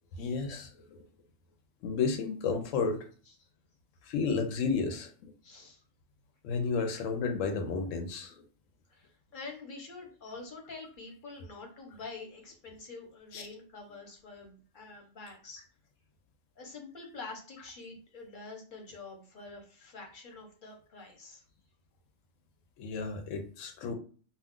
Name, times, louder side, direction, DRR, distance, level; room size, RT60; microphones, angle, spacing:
voice 1, 0.2-1.0 1.8-3.0 4.1-5.3 6.4-8.4 13.3-13.5 22.8-24.0, left 5 dB, 90° left, 1.0 m, -32 dB
voice 2, 5.4-5.8 8.9-15.6 16.6-21.4, left 3 dB, 45° left, 0.9 m, -47 dB
2.4 x 2.3 x 3.6 m
omnidirectional pair, 1.3 m